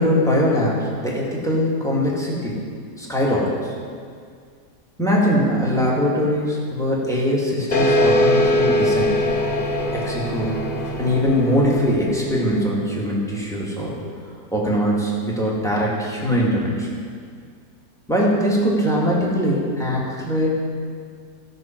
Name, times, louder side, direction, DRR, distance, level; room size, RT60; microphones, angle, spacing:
voice 1, 0.0-2.7 3.0-3.7 5.0-9.2 9.9-10.6 11.0-14.0 14.5-16.9 18.1-20.6, equal, ahead, -4 dB, 1.8 m, -21 dB
sound 1, 7.7-12.8, left 1 dB, 30° left, 1.0 m, -21 dB
15.5 x 6.2 x 4.5 m, 2.1 s
omnidirectional pair, 1.8 m